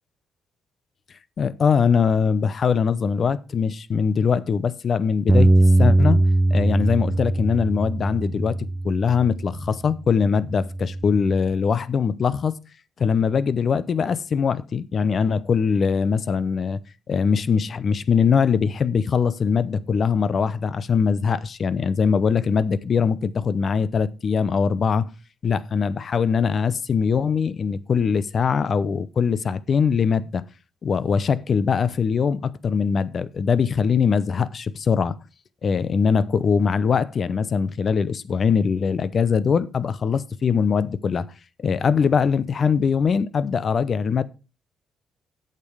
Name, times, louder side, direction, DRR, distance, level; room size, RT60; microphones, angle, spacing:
voice 1, 1.4-5.5 5.8-6.2 6.5-8.6 8.8-12.6 13.0-16.8 17.1-25.1 25.4-30.4 30.8-35.2 35.6-41.3 41.6-44.2, left 6 dB, 50° left, 0.7 m, -22 dB
Bass guitar, 5.3-9.7 10.4-11.5, right 2 dB, 10° right, 0.3 m, -21 dB
8.4 x 6.8 x 4.9 m
cardioid pair, 90°, 0 cm